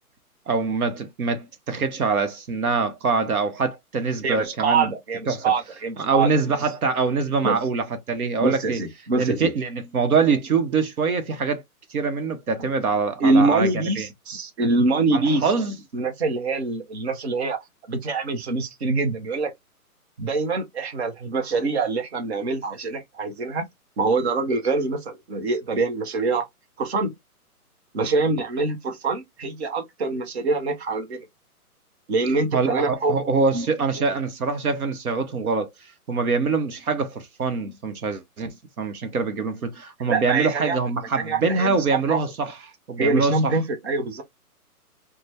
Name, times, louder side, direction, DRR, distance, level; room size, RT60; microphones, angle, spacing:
voice 1, 0.5-4.9 5.3-5.5 6.0-8.8 9.2-11.6 11.9-13.7 14.0-14.1 15.1-15.8 32.5-35.7 36.1-42.5 42.9-43.6, right 4 dB, 70° right, 0.9 m, -24 dB
voice 2, 4.2-6.3 7.4-7.6 8.4-9.5 13.2-15.4 15.9-17.6 17.9-19.5 20.2-23.7 24.0-26.5 26.8-27.1 27.9-31.2 32.1-33.2 33.5-33.7 40.1-40.8 41.2-42.2 43.0-44.2, right 3 dB, 45° right, 0.8 m, -24 dB
3.2 x 2.2 x 2.7 m
hypercardioid pair, 165°, 45 cm